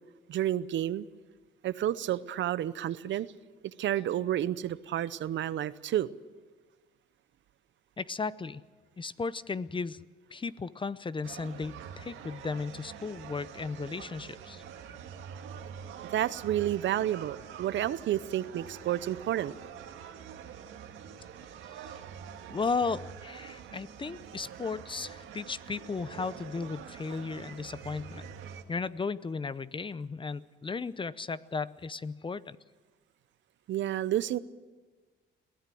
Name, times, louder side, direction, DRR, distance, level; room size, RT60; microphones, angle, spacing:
voice 1, 0.3-1.1 1.6-3.3 3.8-6.1 16.1-19.5 33.7-34.4, right 12 dB, 70° right, 16 dB, 0.7 m, -30 dB
voice 2, 8.0-8.6 9.0-10.0 10.3-14.6 21.8-21.9 22.5-28.3 28.7-32.6, left 4 dB, 25° left, 17 dB, 0.6 m, -35 dB
sound 1, 11.2-28.6, right 8 dB, 90° right, 1.8 m, -46 dB
22.5 x 16.5 x 7.7 m, 1.3 s
cardioid pair, 90°, 20 cm